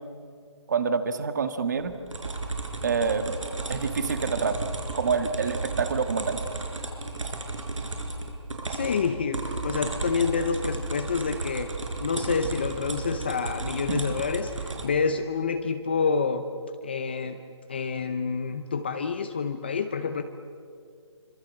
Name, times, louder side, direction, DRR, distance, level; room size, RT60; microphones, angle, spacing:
voice 1, 0.7-1.9 2.8-3.4 3.7-4.6 4.9-6.4 13.9-14.1, right 5 dB, 35° right, 8 dB, 1.7 m, -27 dB
sound 1, 1.7-14.9, right 3 dB, 85° right, 5.9 m, -34 dB
voice 2, 8.7-11.7 12.0-16.4 16.8-17.4 17.7-20.2, left 5 dB, 20° left, 8 dB, 0.7 m, -28 dB
29.5 x 25.5 x 7.7 m, 2.3 s
hypercardioid pair, 175°, 16 cm